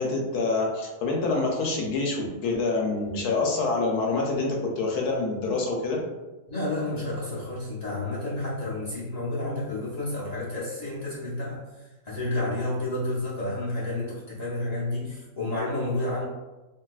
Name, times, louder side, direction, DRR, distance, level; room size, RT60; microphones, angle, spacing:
voice 1, 0.0-6.0, left 3 dB, 75° left, 0 dB, 1.1 m, -26 dB
voice 2, 6.5-11.6 12.0-16.3, left 2 dB, 50° left, -9 dB, 0.4 m, -30 dB
3.3 x 2.7 x 2.3 m, 1.1 s
omnidirectional pair, 1.8 m